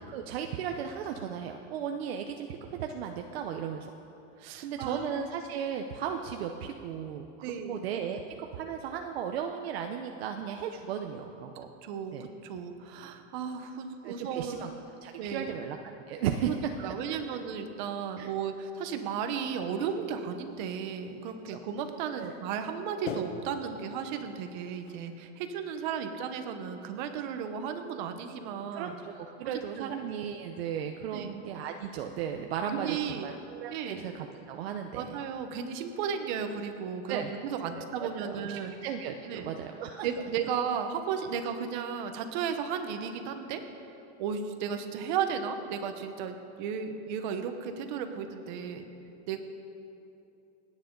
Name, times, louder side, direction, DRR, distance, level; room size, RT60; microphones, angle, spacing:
voice 1, 0.1-3.9 4.6-11.7 12.1-12.3 14.0-14.7 15.0-16.5 16.8-16.9 18.2-18.3 21.5-21.6 22.2-22.3 28.7-35.2 37.1-37.3 37.7-38.5 38.8-40.1, right 8 dB, 55° right, 4 dB, 0.8 m, -36 dB
voice 2, 4.4-5.0 7.4-7.8 11.8-14.7 15.2-15.6 16.4-28.9 29.5-29.9 31.1-31.3 32.7-33.4 33.7-34.1 34.9-38.7 39.3-39.5 40.0-43.6 44.2-48.8 49.3-49.4, right 7 dB, 40° right, 7 dB, 1.1 m, -34 dB
sound 1, 19.9-20.2 20.6-21.0 21.5-21.6 21.9-22.4 23.1-25.6, left 6 dB, 85° left, 1.5 m, -42 dB
28.5 x 9.6 x 3.9 m, 2.9 s
supercardioid pair, 175°, 37 cm